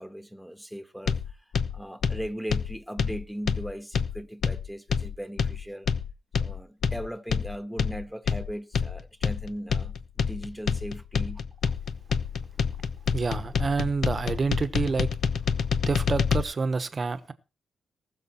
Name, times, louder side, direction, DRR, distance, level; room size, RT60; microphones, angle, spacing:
voice 1, 0.0-5.9 6.4-11.4, equal, ahead, 0.9 m, -38 dB
sound 1, 1.1-16.4, left 6 dB, 65° left, 0.7 m, -27 dB
voice 2, 13.1-15.1 15.9-17.3, right 4 dB, 35° right, 1.1 m, -28 dB
19.0 x 6.5 x 4.4 m
cardioid pair, 110°, 0 cm